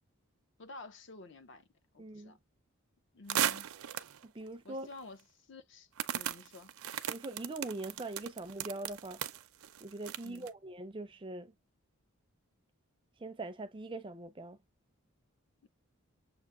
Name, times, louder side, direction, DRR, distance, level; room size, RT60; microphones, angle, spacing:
voice 1, 0.6-1.7 1.9-2.4 3.1-3.7 4.6-5.2 5.5-5.9 6.1-6.7 10.2-10.5 15.6-15.7, left 3 dB, 55° left, 0.6 m, -50 dB
voice 2, 2.0-2.4 4.2-4.9 7.1-9.2 9.8-11.5 13.2-14.6, right 2 dB, 20° right, 0.4 m, -42 dB
sound 1, 3.3-4.2 4.9-5.0 6.0-10.5, right 10 dB, 75° right, 0.5 m, -36 dB
6.9 x 2.5 x 2.5 m
head